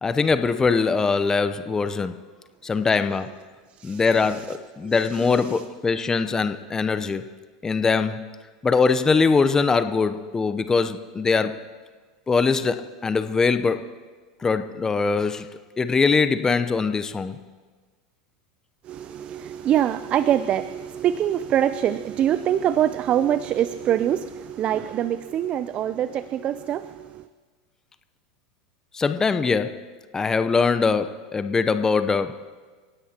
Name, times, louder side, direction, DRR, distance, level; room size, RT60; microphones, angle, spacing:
voice 1, 0.0-2.1 2.6-3.3 3.8-7.2 7.6-8.3 8.6-11.6 12.3-13.9 14.4-15.5 15.8-17.4 28.9-29.9 30.1-32.4, left 4 dB, 20° left, 10 dB, 0.8 m, -22 dB
voice 2, 18.9-27.2, right 10 dB, 40° right, 14 dB, 0.5 m, -24 dB
29.5 x 16.5 x 3.0 m, 1.4 s
hypercardioid pair, 95°, 3 cm